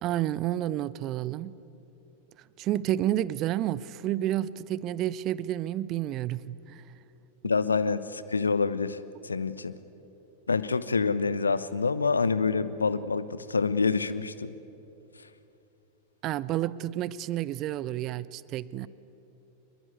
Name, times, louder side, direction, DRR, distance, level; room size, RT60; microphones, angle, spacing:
voice 1, 0.0-1.6 2.6-6.8 16.2-18.9, right 13 dB, 35° right, 0.7 m, -30 dB
voice 2, 7.4-9.0 9.2-9.7 10.5-14.5, left 4 dB, 75° left, 0.9 m, -27 dB
24.5 x 22.0 x 9.6 m
figure-of-eight pair, 90°, 0 cm